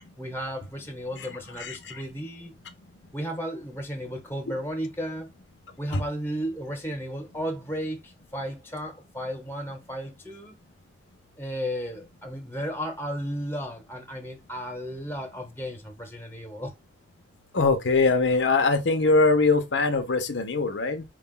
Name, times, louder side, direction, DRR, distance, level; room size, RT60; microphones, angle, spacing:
voice 1, 0.2-2.6 3.1-5.3 5.8-10.5 11.4-16.7, equal, 15° left, 1.1 m, -34 dB
voice 2, 17.5-21.0, left 3 dB, 80° left, 0.8 m, -22 dB
4.8 x 2.3 x 3.7 m
head